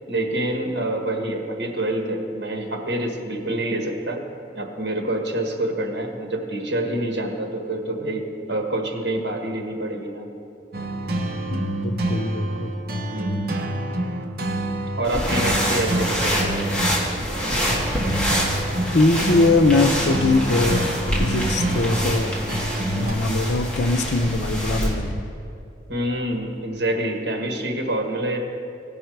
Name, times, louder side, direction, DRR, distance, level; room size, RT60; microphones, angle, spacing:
voice 1, 0.1-4.2 4.5-10.3 13.1-13.5 15.0-16.7 25.9-28.4, right 1 dB, 75° right, 2 dB, 1.4 m, -26 dB
sound 1, 10.7-23.1, right 1 dB, 55° right, 0.9 m, -27 dB
voice 2, 11.5-12.7 18.9-20.8 21.2-22.4 22.9-25.2, left 2 dB, 75° left, 8 dB, 0.6 m, -21 dB
sound 2, 15.0-24.9, equal, 5° left, 1.6 m, -26 dB
16.5 x 5.6 x 4.6 m, 2.7 s
head